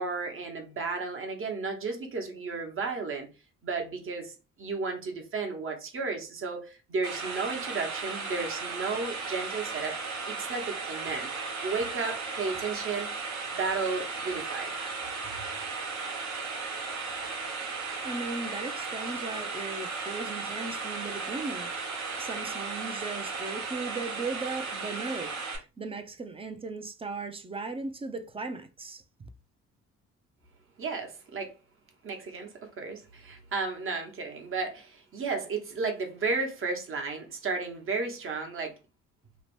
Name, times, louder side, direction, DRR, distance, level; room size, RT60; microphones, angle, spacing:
voice 1, 0.0-3.3 3.6-11.3 11.6-13.1 13.5-14.7 30.8-31.5 32.0-38.8, right 4 dB, 45° right, 0.9 m, -33 dB
sound 1, 7.0-25.6, right 4 dB, 70° right, 1.0 m, -35 dB
voice 2, 18.0-21.7 22.2-25.4 25.8-29.0, right 3 dB, 20° right, 0.3 m, -37 dB
2.8 x 2.1 x 3.0 m
cardioid pair, 90°, 30 cm